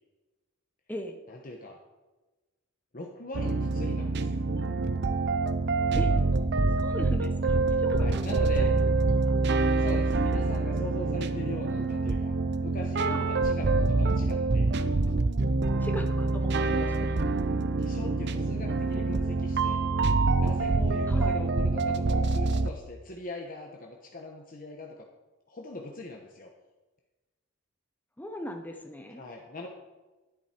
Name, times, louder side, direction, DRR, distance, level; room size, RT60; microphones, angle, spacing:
voice 1, 1.3-1.8 2.9-4.4 7.9-8.7 9.8-14.7 16.7-16.9 17.8-19.8 20.3-25.0 25.5-26.5 29.1-29.7, left 2 dB, 45° left, 1 dB, 1.1 m, -41 dB
sound 1, 3.3-22.7, right 3 dB, 55° right, 0.6 m, -26 dB
voice 2, 6.7-8.1 8.6-8.7 9.2-9.6 13.0-13.3 15.8-17.1 21.1-21.4 28.2-29.2, left 1 dB, 10° left, 3 dB, 0.7 m, -39 dB
11.5 x 11.0 x 4.4 m, 1.2 s
head